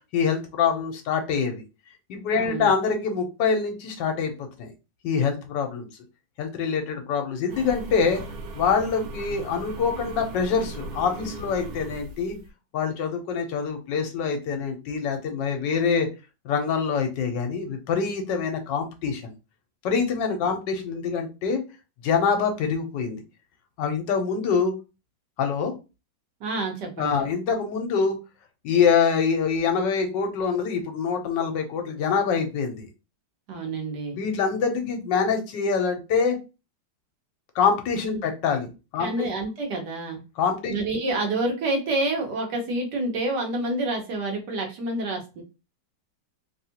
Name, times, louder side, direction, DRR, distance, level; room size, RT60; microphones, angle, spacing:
voice 1, 0.1-1.6 2.1-4.7 5.0-5.9 6.4-8.2 8.5-12.4 12.7-16.1 16.4-19.3 19.8-21.6 22.0-23.2 23.8-24.7 25.4-25.7 27.0-28.2 28.6-32.9 34.2-36.4 37.5-39.3 40.4-40.7, left 6 dB, 70° left, 4 dB, 1.3 m, -25 dB
voice 2, 2.4-2.7 26.4-27.1 33.5-34.2 38.1-38.2 39.0-40.2 40.7-45.4, right 2 dB, 65° right, 2 dB, 1.4 m, -28 dB
sound 1, 7.5-12.5, right 2 dB, 85° right, 1.4 m, -38 dB
3.4 x 2.4 x 2.8 m, 0.29 s
omnidirectional pair, 2.1 m